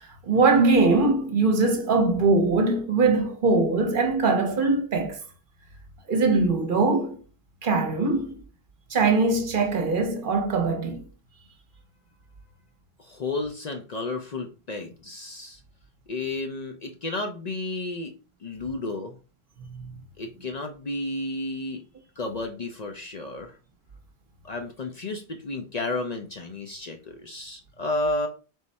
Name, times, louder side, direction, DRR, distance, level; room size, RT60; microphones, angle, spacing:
voice 1, 0.2-5.2 6.1-7.2 7.6-8.4 8.9-11.0 19.7-19.8, right 3 dB, 55° right, 0.9 m, -22 dB
voice 2, 13.0-15.6 16.1-18.1 18.4-19.2 20.2-21.8 22.2-23.5 24.4-28.3, left 2 dB, 50° left, 0.6 m, -32 dB
3.6 x 3.2 x 4.0 m
omnidirectional pair, 1.1 m